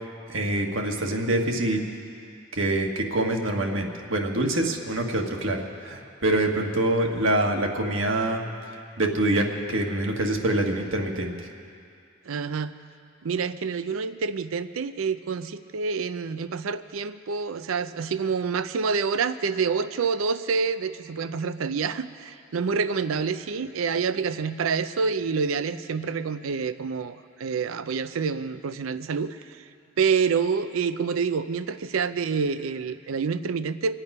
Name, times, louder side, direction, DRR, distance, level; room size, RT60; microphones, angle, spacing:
voice 1, 0.3-1.8 2.5-8.4 9.0-11.3, right 1 dB, 70° right, 2 dB, 1.5 m, -25 dB
voice 2, 12.3-12.7 13.2-29.6 30.0-33.9, right 5 dB, 85° right, 13 dB, 0.5 m, -27 dB
25.5 x 8.9 x 5.4 m, 2.4 s
head